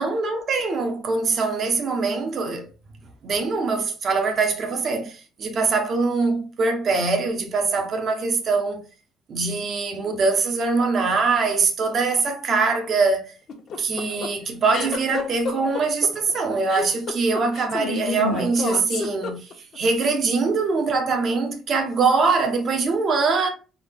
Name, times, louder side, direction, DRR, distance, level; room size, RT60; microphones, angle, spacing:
voice 1, 0.0-2.7 3.2-8.8 9.3-13.3 13.8-23.5, right 4 dB, 45° right, 1.0 m, -23 dB
sound 1, 13.5-19.8, left 4 dB, 55° left, 1.0 m, -29 dB
3.8 x 2.7 x 3.5 m
cardioid pair, 120°, 0 cm